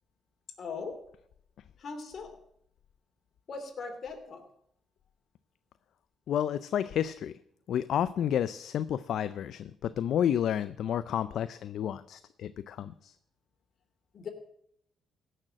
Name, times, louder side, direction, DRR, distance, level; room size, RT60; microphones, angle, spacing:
voice 1, 0.6-1.0 1.8-2.4 3.5-4.4 14.1-14.3, left 4 dB, 55° left, 5 dB, 2.9 m, -39 dB
voice 2, 6.3-7.4 7.7-13.2, left 9 dB, 70° left, 14 dB, 0.4 m, -30 dB
16.0 x 6.5 x 7.6 m, 0.72 s
cardioid pair, 90°, 0 cm